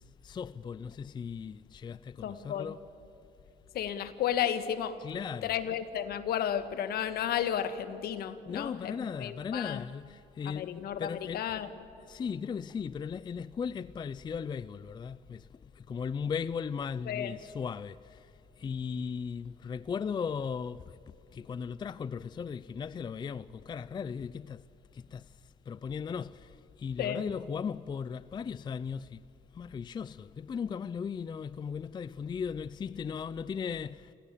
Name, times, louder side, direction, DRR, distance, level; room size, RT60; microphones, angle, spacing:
voice 1, 0.0-2.8 5.0-5.5 8.5-11.5 12.1-21.0 21.3-24.6 24.9-25.4 25.7-29.2 29.5-34.1, left 6 dB, 25° left, 0.4 m, -37 dB
voice 2, 2.2-2.7 3.7-5.0 5.4-9.8 10.4-11.7 17.1-17.3 27.0-27.2, left 9 dB, 65° left, 1.6 m, -33 dB
27.5 x 16.0 x 8.5 m
cardioid pair, 110°, 17 cm